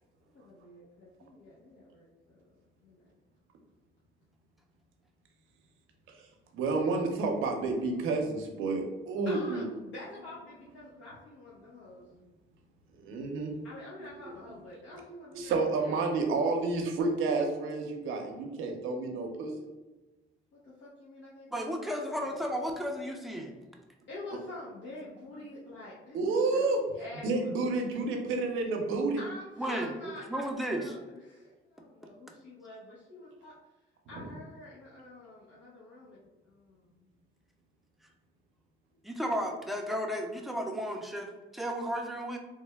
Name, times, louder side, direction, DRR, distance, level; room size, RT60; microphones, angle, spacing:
voice 1, 0.3-2.5 2.8-3.0 9.2-12.1 13.6-16.0 20.5-22.3 24.1-27.5 29.2-33.6 34.1-37.1 38.9-39.4, left 2 dB, 70° left, -8 dB, 0.9 m, -47 dB
voice 2, 6.5-9.7 13.0-13.5 14.2-14.3 14.9-15.0 15.3-19.5 26.1-26.8 27.2-29.2 34.1-34.3, right 3 dB, 90° right, 2 dB, 0.6 m, -30 dB
voice 3, 21.5-23.5 29.6-31.0 39.0-42.4, equal, ahead, 2 dB, 0.5 m, -34 dB
3.4 x 2.2 x 3.3 m, 1.1 s
cardioid pair, 90°, 20 cm